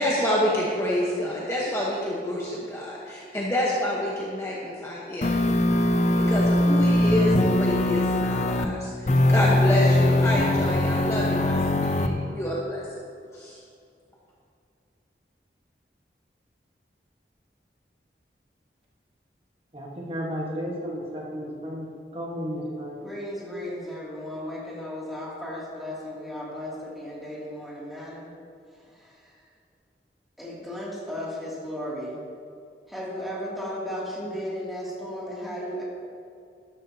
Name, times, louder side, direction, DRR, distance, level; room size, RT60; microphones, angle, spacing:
voice 1, 0.0-5.3 6.2-12.9 13.3-13.6, left 1 dB, 15° left, -5 dB, 1.1 m, -28 dB
sound 1, 5.2-8.7 9.1-12.1, left 1 dB, 40° left, 0.6 m, -21 dB
voice 2, 19.7-21.9 22.1-23.0, equal, 35° right, -4 dB, 1.4 m, -33 dB
voice 3, 23.0-28.3 29.0-29.2 30.4-32.2 32.9-35.8, equal, ahead, -7 dB, 2.5 m, -35 dB
13.0 x 11.5 x 2.8 m, 2.4 s
head